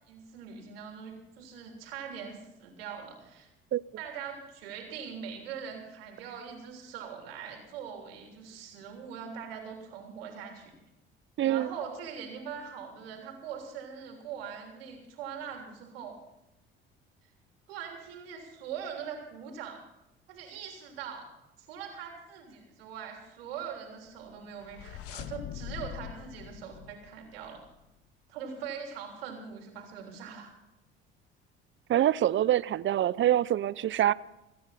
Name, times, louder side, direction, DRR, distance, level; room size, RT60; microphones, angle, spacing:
voice 1, 0.1-3.5 4.0-10.7 11.4-16.2 17.7-19.8 20.3-21.2 21.6-27.6 28.3-30.5, right 7 dB, 85° right, 2 dB, 3.4 m, -42 dB
voice 2, 11.4-11.7 31.9-34.1, right 12 dB, 40° right, 20 dB, 0.6 m, -25 dB
sound 1, 24.2-27.8, left 13 dB, 55° left, 0.6 m, -43 dB
28.5 x 9.8 x 4.2 m, 0.94 s
hypercardioid pair, 65°, 29 cm